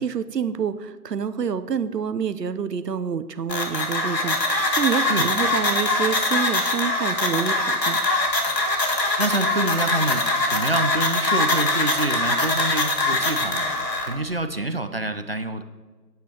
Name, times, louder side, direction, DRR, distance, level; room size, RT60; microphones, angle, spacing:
voice 1, 0.0-8.0, right 7 dB, 80° right, 13 dB, 0.8 m, -27 dB
sound 1, 3.5-14.1, left 2 dB, 80° left, 2.0 m, -23 dB
voice 2, 9.2-13.7 14.1-15.6, right 2 dB, 40° right, 9 dB, 0.4 m, -27 dB
18.0 x 8.4 x 2.9 m, 1.4 s
figure-of-eight pair, 155°, 48 cm